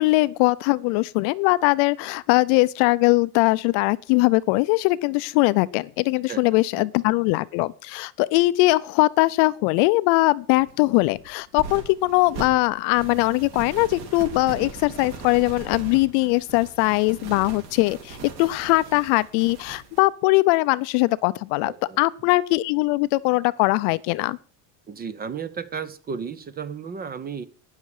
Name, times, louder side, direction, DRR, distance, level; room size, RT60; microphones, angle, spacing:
voice 1, 0.0-24.4, left 22 dB, 55° left, 0.6 m, -21 dB
voice 2, 6.3-6.9 21.6-22.0 24.9-27.4, right 6 dB, 20° right, 0.6 m, -34 dB
sound 1, 10.5-20.0, right 4 dB, 50° right, 3.6 m, -39 dB
12.5 x 9.9 x 4.9 m
supercardioid pair, 145°, 48 cm